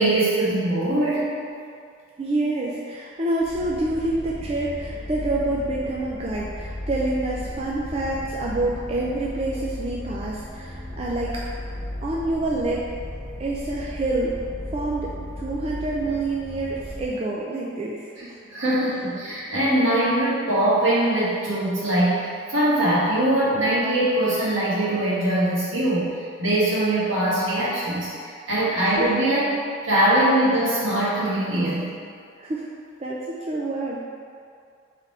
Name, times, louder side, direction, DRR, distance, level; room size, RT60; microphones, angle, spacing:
voice 1, 0.0-1.3 18.2-18.3 18.5-26.1 26.4-29.5 29.8-31.9, right 1 dB, 75° right, -8 dB, 1.4 m, -22 dB
voice 2, 2.2-11.4 12.0-12.8 13.4-14.4 14.7-18.3 29.0-29.1 32.4-32.7 33.0-34.0, right 2 dB, 30° right, -5 dB, 0.3 m, -27 dB
sound 1, 3.4-17.1, left 1 dB, 80° left, 0.9 m, -35 dB
3.7 x 3.3 x 4.3 m, 2.3 s
head